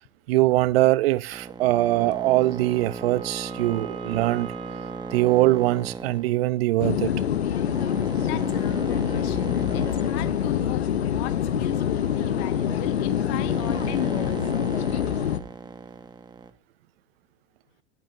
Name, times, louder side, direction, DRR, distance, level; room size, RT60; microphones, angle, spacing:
voice 1, 0.3-4.5 5.1-7.2, right 17 dB, 70° right, 0.8 m, -22 dB
sound 1, 1.3-16.5, right 4 dB, 15° right, 1.4 m, -37 dB
Wind instrument woodwind instrument, 1.9-6.4, right 5 dB, 85° right, 1.7 m, -43 dB
sound 2, 6.8-15.4, left 9 dB, 90° left, 0.9 m, -25 dB
voice 2, 8.2-14.4, left 17 dB, 55° left, 1.0 m, -36 dB
20.0 x 8.9 x 2.7 m
hypercardioid pair, 95°, 31 cm